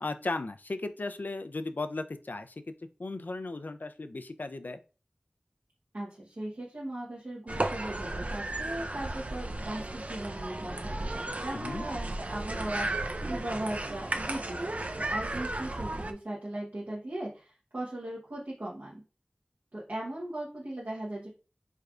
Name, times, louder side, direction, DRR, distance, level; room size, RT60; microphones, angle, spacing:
voice 1, 0.0-2.5 3.0-4.8 11.5-11.9, left 3 dB, 65° left, 9 dB, 0.4 m, -36 dB
voice 2, 5.9-19.0 19.7-21.3, right 1 dB, 70° right, -6 dB, 1.0 m, -38 dB
sound 1, 7.5-16.1, right 2 dB, 45° right, 0.4 m, -34 dB
3.6 x 3.2 x 2.4 m, 0.34 s
wide cardioid pair, 45°, 3 cm